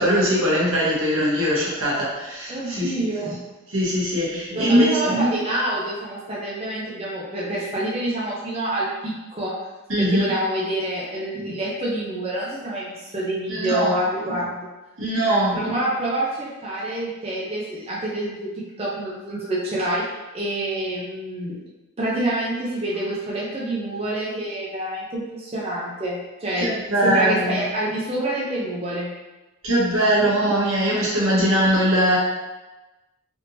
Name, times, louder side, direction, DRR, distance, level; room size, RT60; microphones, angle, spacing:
voice 1, 0.0-2.9 3.7-5.1 9.9-10.3 13.5-13.9 15.0-15.6 26.6-27.6 29.6-32.2, equal, 90° right, -6 dB, 1.2 m, -21 dB
voice 2, 2.5-3.4 4.5-9.5 10.0-14.7 15.5-20.0 20.3-21.6 22.0-29.1 30.2-30.3 31.4-31.6, right 1 dB, 30° right, -5 dB, 0.6 m, -27 dB
3.5 x 2.8 x 2.7 m, 1.1 s
head